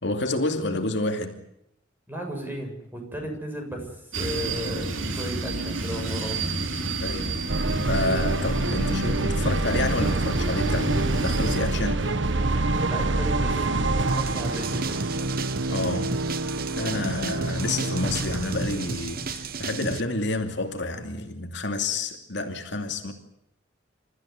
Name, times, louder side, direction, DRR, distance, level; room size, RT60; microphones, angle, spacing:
voice 1, 0.0-1.4 7.0-7.4 7.9-12.1 15.7-16.2 16.7-23.1, left 2 dB, 65° left, 2.6 m, -29 dB
voice 2, 2.1-6.4 12.8-15.0, equal, 10° right, 6.8 m, -35 dB
sound 1, 4.1-11.6, right 2 dB, 90° right, 3.3 m, -30 dB
sound 2, 7.5-20.3, right 2 dB, 70° right, 1.4 m, -27 dB
sound 3, 14.1-20.0, right 4 dB, 50° right, 1.0 m, -34 dB
28.5 x 14.5 x 9.5 m
head